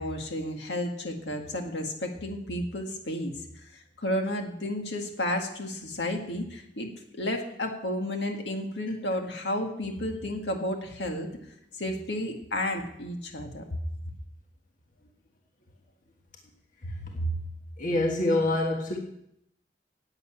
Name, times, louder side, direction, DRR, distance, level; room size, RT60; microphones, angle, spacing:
voice 1, 0.0-3.3 3.6-11.3 11.7-13.8, left 1 dB, 75° left, 3 dB, 2.0 m, -32 dB
voice 2, 16.8-17.4 17.8-19.0, left 1 dB, 50° left, 1 dB, 1.6 m, -26 dB
11.0 x 8.4 x 8.9 m, 0.77 s
head